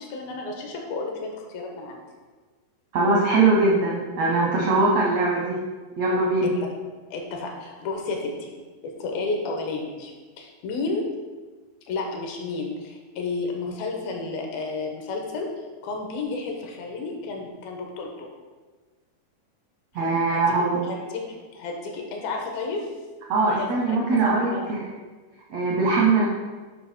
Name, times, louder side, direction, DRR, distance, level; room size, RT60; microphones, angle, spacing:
voice 1, 0.0-2.0 6.4-6.5 7.1-8.5 8.8-10.1 10.4-11.1 11.8-15.5 15.8-18.3 20.3-21.2 21.5-22.9 23.5-24.0 24.2-24.8, left 3 dB, 80° left, 1 dB, 2.8 m, -32 dB
voice 2, 2.9-5.6 6.0-6.5 19.9-20.8 23.3-24.9 25.5-26.2, right 3 dB, 80° right, -3 dB, 1.5 m, -21 dB
9.3 x 3.4 x 5.8 m, 1.4 s
omnidirectional pair, 4.4 m